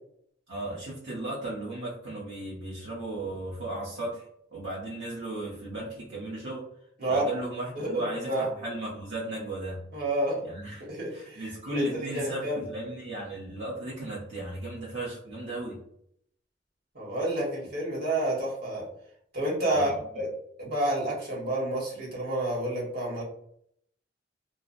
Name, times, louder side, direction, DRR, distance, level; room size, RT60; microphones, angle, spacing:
voice 1, 0.5-6.7 7.1-9.8 10.4-15.8 19.7-20.2, right 1 dB, 70° right, -6 dB, 0.7 m, -36 dB
voice 2, 7.7-8.4 9.9-10.4 10.9-11.8 12.1-12.6 16.9-18.9 19.3-20.3 20.6-23.2, right 1 dB, 55° right, -4 dB, 1.1 m, -29 dB
2.7 x 2.0 x 2.5 m, 0.69 s
head